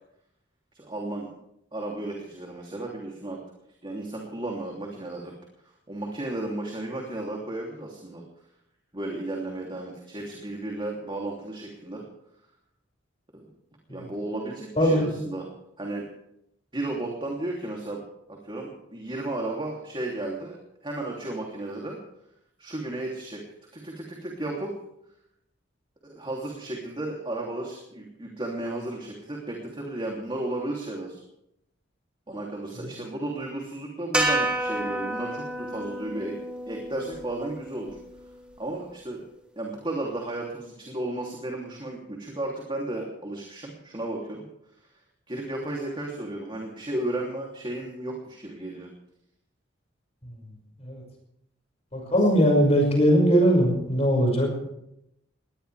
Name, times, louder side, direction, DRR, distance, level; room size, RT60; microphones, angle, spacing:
voice 1, 0.7-1.3 1.7-3.4 3.8-5.3 5.9-8.2 8.9-12.0 13.3-13.5 13.9-15.4 15.8-16.1 16.7-18.0 18.3-22.0 22.6-23.4 23.7-24.7 26.0-31.2 32.3-36.4 36.7-37.9 38.6-39.3 39.6-44.4 45.3-48.9, right 2 dB, 25° right, -1 dB, 3.1 m, -34 dB
voice 2, 14.8-15.1 32.8-32.9 50.2-50.3 50.8-51.0 51.9-54.6, equal, 35° left, 0 dB, 6.0 m, -21 dB
sound 1, 34.1-38.5, right 1 dB, 5° right, 3.2 m, -30 dB
22.0 x 18.5 x 3.5 m, 0.78 s
head